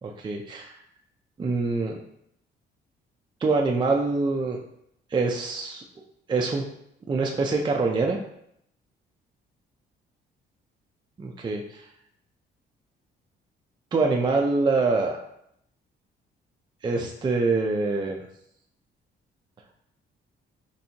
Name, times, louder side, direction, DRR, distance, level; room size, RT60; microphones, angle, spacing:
voice 1, 0.0-0.7 1.4-2.0 3.4-4.6 5.1-5.8 6.3-6.7 7.1-8.2 11.2-11.8 13.9-15.2 16.8-18.2, right 3 dB, 25° right, 0 dB, 0.4 m, -25 dB
4.3 x 2.7 x 2.7 m, 0.73 s
cardioid pair, 90°, 20 cm